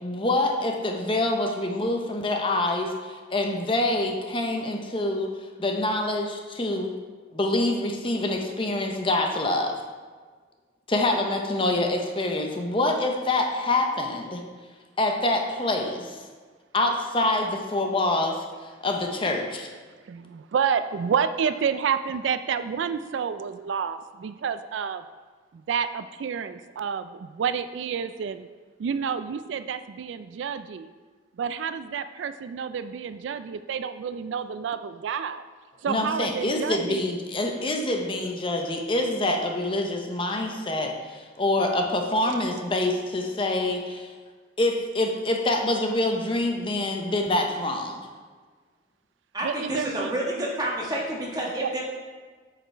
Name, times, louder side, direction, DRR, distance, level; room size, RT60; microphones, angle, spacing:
voice 1, 0.0-5.3 5.6-6.9 7.3-9.7 10.9-14.4 15.0-16.2 16.7-18.4 18.8-19.7 35.9-44.1 44.6-48.0, left 2 dB, 30° left, 3 dB, 0.7 m, -26 dB
voice 2, 20.1-25.0 25.5-28.5 28.8-30.9 31.4-35.4 35.8-37.0 49.4-50.1 51.6-51.7, right 7 dB, 85° right, 11 dB, 0.3 m, -29 dB
voice 3, 49.3-51.8, right 1 dB, 20° right, -3 dB, 1.3 m, -29 dB
7.8 x 5.0 x 4.4 m, 1.5 s
head